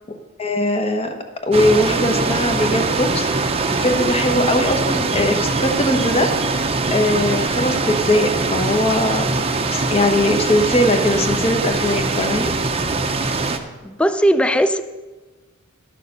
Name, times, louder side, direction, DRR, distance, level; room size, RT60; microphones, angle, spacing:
voice 1, 0.4-1.1 1.4-6.3 6.9-12.5, left 1 dB, 30° left, 5 dB, 1.1 m, -20 dB
sound 1, 1.5-13.6, right 3 dB, 30° right, 0.7 m, -22 dB
voice 2, 13.8-14.8, equal, 5° left, 11 dB, 0.4 m, -17 dB
11.5 x 6.7 x 6.6 m, 1.2 s
head